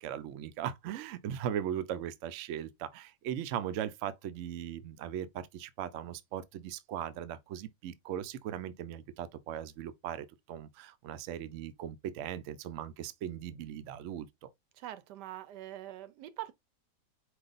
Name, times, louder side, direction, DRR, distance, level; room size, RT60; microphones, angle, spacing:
voice 1, 0.0-14.5, right 10 dB, 70° right, 0.7 m, -39 dB
voice 2, 14.7-16.5, right 14 dB, 85° right, 1.3 m, -43 dB
4.7 x 2.6 x 3.8 m
omnidirectional pair, 1.8 m